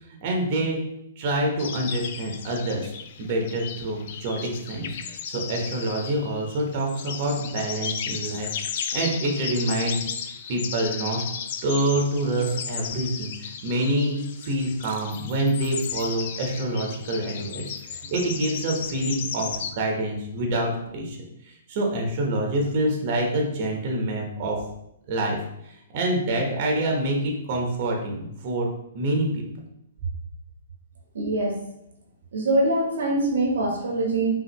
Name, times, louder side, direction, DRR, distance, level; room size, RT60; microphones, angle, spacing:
voice 1, 0.2-0.8 1.2-2.9 3.2-4.9 5.3-8.5 8.9-10.0 10.5-11.2 11.6-21.2 21.4-24.6 25.1-25.4 25.6-28.7 28.9-29.4, right 1 dB, 45° right, 0 dB, 1.0 m, -26 dB
sound 1, 1.6-19.7, left 7 dB, 50° left, 0.4 m, -35 dB
voice 2, 31.1-31.6 32.3-34.3, right 2 dB, 65° right, 0 dB, 1.1 m, -23 dB
5.2 x 2.7 x 3.0 m, 0.80 s
figure-of-eight pair, 120°, 0 cm